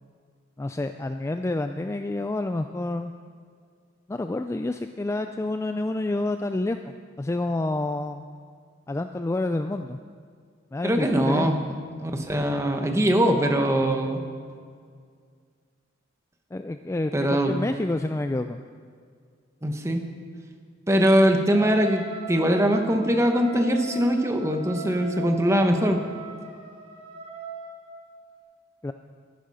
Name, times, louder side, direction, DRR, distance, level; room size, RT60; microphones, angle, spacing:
voice 1, 0.6-3.1 4.1-8.3 8.9-10.0 10.7-11.6 16.5-18.6 28.8-28.9, left 2 dB, 15° left, 8 dB, 0.3 m, -28 dB
voice 2, 10.8-11.6 12.0-14.2 17.1-17.5 19.6-20.0 20.9-26.0, equal, 15° right, 4 dB, 1.1 m, -22 dB
Wind instrument woodwind instrument, 21.5-28.1, right 4 dB, 30° right, 4.0 m, -39 dB
12.5 x 11.5 x 5.6 m, 2.1 s
head